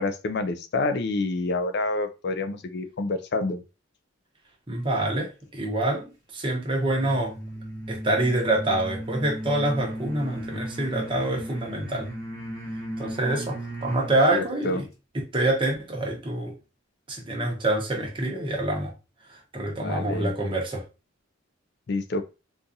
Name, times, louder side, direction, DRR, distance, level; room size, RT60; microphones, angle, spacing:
voice 1, 0.0-3.6 14.3-14.8 19.8-20.3 21.9-22.2, left 2 dB, 50° left, 0.3 m, -28 dB
voice 2, 4.7-7.4 7.9-12.1 13.0-14.8 15.1-16.5 17.1-18.9 19.3-20.8, right 1 dB, 25° right, 0.9 m, -26 dB
sound 1, 6.8-14.2, right 1 dB, 15° left, 1.1 m, -36 dB
3.8 x 2.4 x 2.6 m
head